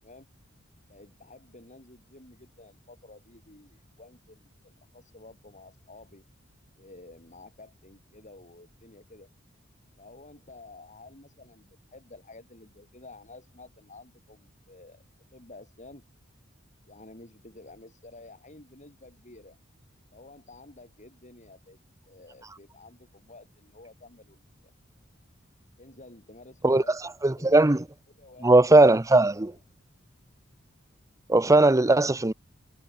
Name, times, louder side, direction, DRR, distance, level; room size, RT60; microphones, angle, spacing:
voice 1, 0.9-6.2 6.8-9.3 10.0-15.0 15.3-16.0 16.9-19.6 20.1-21.8 22.0-24.7 25.8-27.0 27.3-27.5 28.1-28.9, left 2 dB, 35° left, 7.4 m, -51 dB
voice 2, 27.2-27.8 28.4-29.5 31.3-32.3, right 2 dB, 15° right, 0.7 m, -18 dB
head